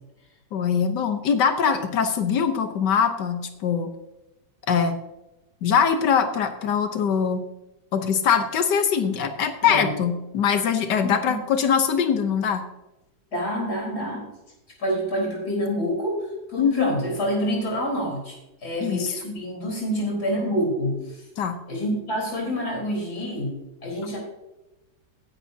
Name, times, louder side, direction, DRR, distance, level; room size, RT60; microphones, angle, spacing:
voice 1, 0.5-3.9 4.7-5.0 5.6-7.4 7.9-12.6 16.6-16.9 18.8-19.1 21.4-21.6, left 7 dB, 80° left, 8 dB, 1.6 m, -22 dB
voice 2, 11.0-11.4 13.3-14.3 14.8-18.4 18.6-21.2 21.7-23.5 23.8-24.2, equal, 65° left, -2 dB, 4.6 m, -27 dB
15.0 x 10.5 x 2.8 m, 0.96 s
omnidirectional pair, 1.8 m